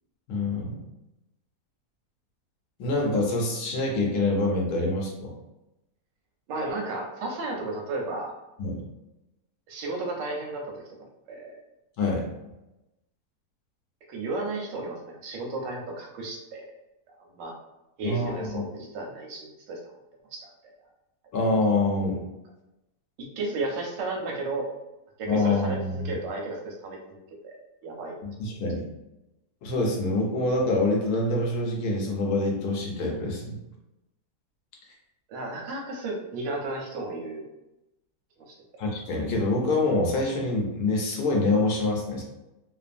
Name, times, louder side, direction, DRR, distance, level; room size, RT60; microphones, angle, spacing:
voice 1, 0.3-0.8 2.8-5.3 8.6-8.8 12.0-12.3 18.0-18.7 21.3-22.2 25.3-26.1 28.2-28.9 29.6-33.6 38.8-42.2, left 2 dB, 70° left, -1 dB, 1.1 m, -26 dB
voice 2, 6.5-8.3 9.7-10.7 11.3-11.6 14.1-16.6 17.3-17.5 18.0-19.8 20.3-20.5 23.2-24.7 25.2-28.2 28.5-28.6 35.3-37.4 38.4-38.5, right 2 dB, 90° right, 1 dB, 1.3 m, -33 dB
3.2 x 2.1 x 2.5 m, 0.94 s
omnidirectional pair, 1.8 m